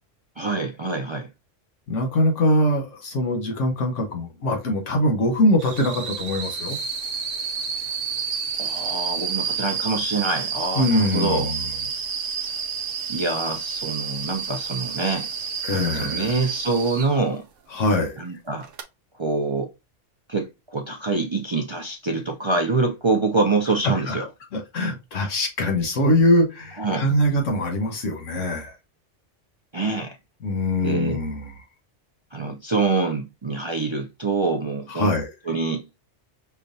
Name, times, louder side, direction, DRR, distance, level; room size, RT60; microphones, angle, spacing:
voice 1, 0.4-1.3 8.6-11.5 13.1-15.3 15.7-17.5 18.2-18.7 19.2-19.7 20.3-24.3 26.8-27.1 29.7-30.2 30.8-31.2 32.3-35.2 35.5-35.8, right 3 dB, 50° right, 0.3 m, -25 dB
voice 2, 1.9-6.8 10.8-11.6 15.6-16.3 17.7-18.2 23.8-24.2 24.5-28.7 30.4-31.5 34.9-35.3, left 1 dB, 80° left, 1.4 m, -22 dB
sound 1, 5.6-17.2 18.6-18.8, right 6 dB, 80° right, 1.0 m, -30 dB
5.6 x 2.3 x 2.5 m
omnidirectional pair, 1.3 m